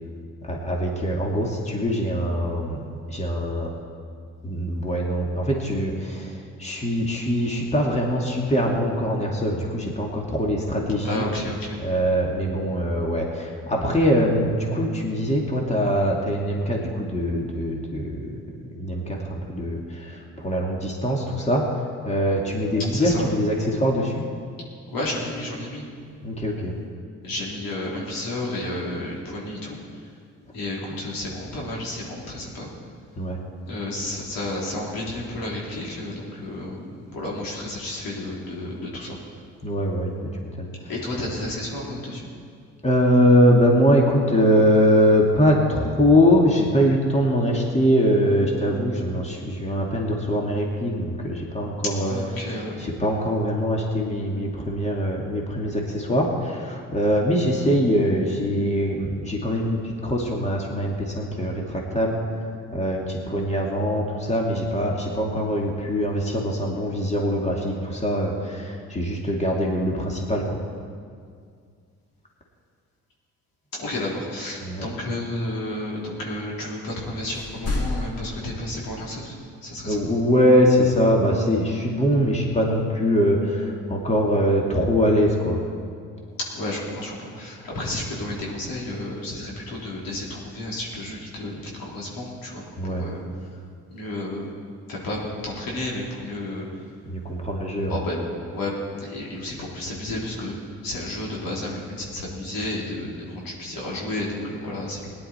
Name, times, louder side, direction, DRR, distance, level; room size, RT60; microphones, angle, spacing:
voice 1, 0.4-2.8 3.1-3.7 4.4-11.2 11.8-18.4 18.7-24.2 26.2-26.8 33.2-33.4 39.6-40.1 40.4-40.7 42.8-70.6 74.6-74.8 79.9-85.6 92.8-93.0 97.1-98.0, equal, 20° left, -1 dB, 2.4 m, -22 dB
voice 2, 11.0-11.8 22.9-23.3 24.9-25.9 27.2-29.8 30.5-32.7 33.6-39.2 40.8-42.3 52.1-52.8 73.7-79.4 79.6-80.0 86.5-93.2 93.5-93.6 93.9-94.5 94.9-96.7 97.9-98.2 98.5-105.1, left 1 dB, 70° left, -4 dB, 3.5 m, -31 dB
sound 1, 77.3-79.0 81.5-81.6, left 2 dB, 40° left, 2.1 m, -29 dB
17.5 x 10.5 x 4.4 m, 2.2 s
hypercardioid pair, 55°, 36 cm